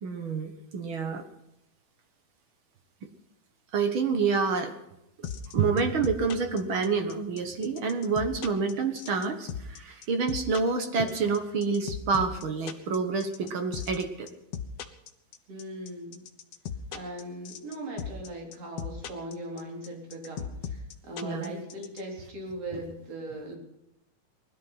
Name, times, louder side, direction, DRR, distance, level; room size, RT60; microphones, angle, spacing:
voice 1, 0.0-1.2 3.7-4.7 5.5-14.3 21.2-21.5 22.7-22.8, right 5 dB, 65° right, 6 dB, 1.2 m, -28 dB
sound 1, 5.2-22.0, left 8 dB, 70° left, 1.6 m, -37 dB
voice 2, 15.5-16.2 16.9-23.6, right 1 dB, 40° right, 0 dB, 4.9 m, -39 dB
20.0 x 12.5 x 5.7 m, 0.87 s
omnidirectional pair, 4.4 m